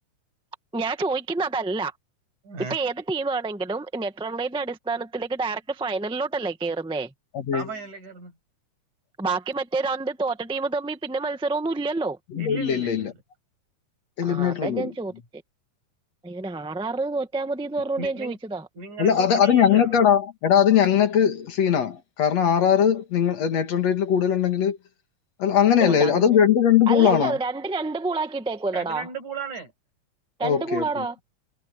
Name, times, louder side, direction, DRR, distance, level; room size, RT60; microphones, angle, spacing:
voice 1, 0.7-1.9 2.7-7.1 9.2-12.2 14.2-15.1 16.2-18.6 25.8-26.4 26.9-29.1 30.4-31.2, right 3 dB, 10° right, 0.3 m, -28 dB
voice 2, 2.4-2.8 7.5-8.4 12.4-13.2 18.0-18.4 18.7-20.0 28.7-29.7, right 4 dB, 85° right, 8.7 m, -36 dB
voice 3, 7.3-7.7 12.3-13.1 14.2-14.9 19.0-24.8 25.4-27.4 30.4-31.0, left 8 dB, 65° left, 3.0 m, -20 dB
omnidirectional pair, 3.3 m